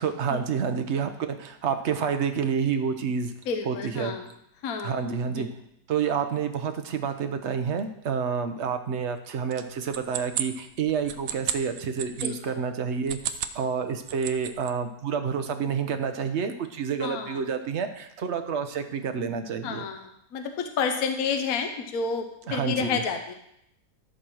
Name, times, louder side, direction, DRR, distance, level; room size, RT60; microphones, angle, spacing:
voice 1, 0.0-3.3 3.6-4.1 4.8-5.5 5.9-19.8 22.5-23.0, right 6 dB, 50° right, 7 dB, 0.9 m, -29 dB
voice 2, 3.5-4.3 4.6-5.0 5.3-5.5 12.2-12.6 17.0-17.4 19.6-23.3, left 5 dB, 55° left, 6 dB, 1.2 m, -30 dB
sound 1, 9.5-12.3 12.9-13.6 13.9-14.7, right 10 dB, 90° right, 1.3 m, -33 dB
12.5 x 4.4 x 6.3 m, 0.75 s
omnidirectional pair, 2.0 m